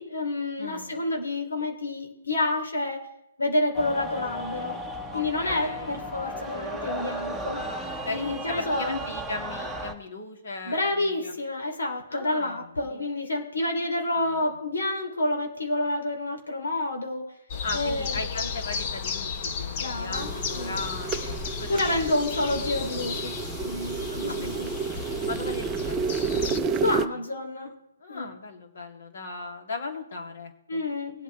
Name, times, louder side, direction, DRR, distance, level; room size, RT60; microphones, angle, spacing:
voice 1, 0.0-3.1 3.4-4.8 5.1-7.6 8.1-9.0 10.6-17.3 17.7-18.2 19.8-20.3 20.5-20.8 21.7-23.3 23.6-24.7 26.8-27.7 28.1-28.4 30.7-31.2, left 2 dB, 90° left, 2 dB, 3.0 m, -29 dB
voice 2, 0.6-1.0 5.1-6.0 7.3-11.4 12.1-13.1 14.1-14.6 17.6-22.5 24.1-24.7 25.0-26.0 26.3-27.2 28.0-30.8, left 3 dB, 60° left, 3 dB, 2.6 m, -38 dB
sound 1, 3.7-9.9, equal, ahead, 1.0 m, -35 dB
Forest in Spring with distant traffic, 17.5-26.6, left 6 dB, 35° left, 1.0 m, -34 dB
sound 2, 20.1-27.1, right 5 dB, 15° right, 0.5 m, -31 dB
21.5 x 8.3 x 3.3 m, 0.85 s
hypercardioid pair, 155°, 0 cm